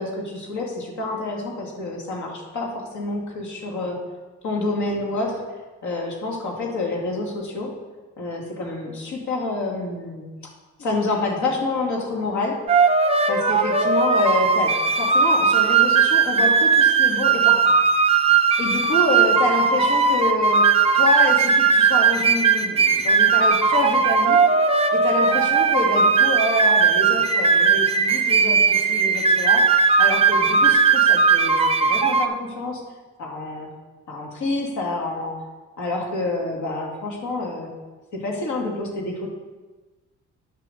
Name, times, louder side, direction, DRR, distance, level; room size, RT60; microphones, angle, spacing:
voice 1, 0.0-4.0 4.4-5.4 5.8-7.7 8.2-10.3 10.8-12.6 13.3-17.6 18.6-24.4 24.9-29.7 30.0-32.8 33.2-33.7 34.1-35.4 35.8-37.7 38.1-39.3, left 2 dB, 70° left, -1 dB, 2.9 m, -27 dB
sound 1, 12.7-32.3, right 5 dB, 20° right, 0.8 m, -18 dB
9.9 x 6.1 x 7.1 m, 1.2 s
cardioid pair, 90°, 30 cm